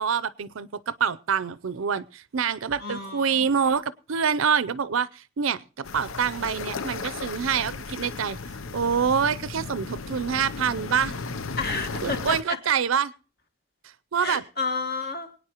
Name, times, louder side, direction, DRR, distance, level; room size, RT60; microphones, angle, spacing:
voice 1, 0.0-8.4 8.7-11.1 12.0-13.1 14.1-14.4, right 7 dB, 80° right, 17 dB, 0.6 m, -26 dB
voice 2, 2.8-3.5 11.6-12.6 14.2-15.3, left 4 dB, 50° left, 6 dB, 1.7 m, -31 dB
sound 1, 5.8-12.4, left 4 dB, 80° left, 0.7 m, -35 dB
23.0 x 9.3 x 2.9 m, 0.36 s
head